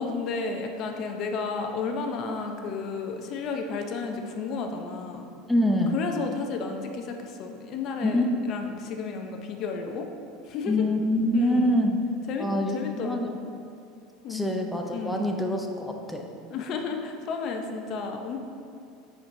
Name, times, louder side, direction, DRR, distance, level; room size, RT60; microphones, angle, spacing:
voice 1, 0.0-5.3 5.9-10.1 10.5-10.9 11.3-11.8 12.3-13.4 14.2-14.6 14.9-15.4 16.5-18.4, left 4 dB, 50° left, 4 dB, 0.6 m, -32 dB
voice 2, 5.5-6.0 8.0-8.3 10.7-12.0 12.4-13.3 14.3-16.2, left 1 dB, 5° left, 2 dB, 0.5 m, -25 dB
8.8 x 4.5 x 2.7 m, 2.5 s
supercardioid pair, 105°, 0 cm